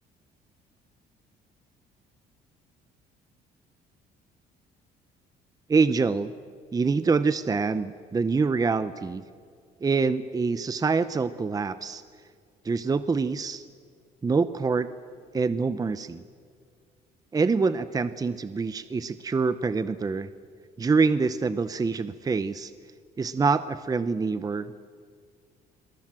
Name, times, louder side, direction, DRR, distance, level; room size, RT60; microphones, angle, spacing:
voice 1, 5.7-6.3 6.7-9.2 9.8-12.0 12.6-13.6 14.2-14.9 15.3-16.2 17.3-20.3 20.8-22.7 23.2-24.8, right 4 dB, 20° right, 13 dB, 0.8 m, -25 dB
28.5 x 22.0 x 7.6 m, 2.1 s
cardioid pair, 110°, 17 cm